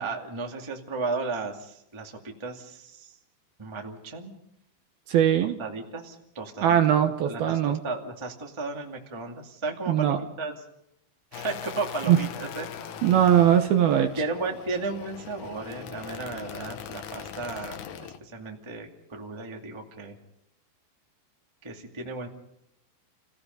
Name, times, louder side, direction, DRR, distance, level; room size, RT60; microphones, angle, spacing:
voice 1, 0.0-3.2 3.6-4.3 5.6-10.5 11.3-12.7 13.1-13.2 14.2-20.1 21.6-22.3, right 3 dB, 15° right, 1 dB, 1.1 m, -34 dB
voice 2, 5.1-5.6 6.6-7.8 9.9-10.2 12.1-12.2 13.0-14.1, right 10 dB, 70° right, 6 dB, 2.5 m, -20 dB
sound 1, 11.3-18.2, left 8 dB, 85° left, 1.6 m, -41 dB
30.0 x 17.5 x 5.4 m, 0.80 s
omnidirectional pair, 5.2 m